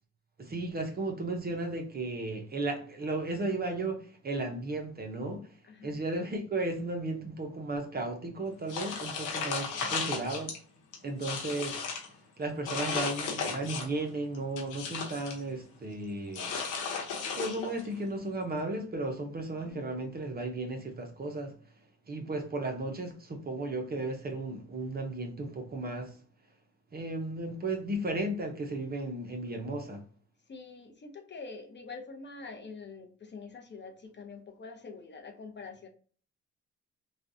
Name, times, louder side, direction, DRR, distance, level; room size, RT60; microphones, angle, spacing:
voice 1, 0.4-5.5 5.8-10.5 11.0-11.8 12.4-16.5 17.3-21.6 22.1-26.2 26.9-30.0, right 2 dB, 30° right, 0.8 m, -35 dB
voice 2, 5.6-6.0 9.7-10.0 19.6-19.8 30.5-35.9, left 4 dB, 35° left, 0.7 m, -45 dB
sound 1, 8.7-10.6 10.9-12.1 12.7-14.0 14.3-15.4 16.3-17.9, left 5 dB, 90° left, 0.9 m, -35 dB
3.3 x 2.3 x 2.6 m
cardioid pair, 90°, 30 cm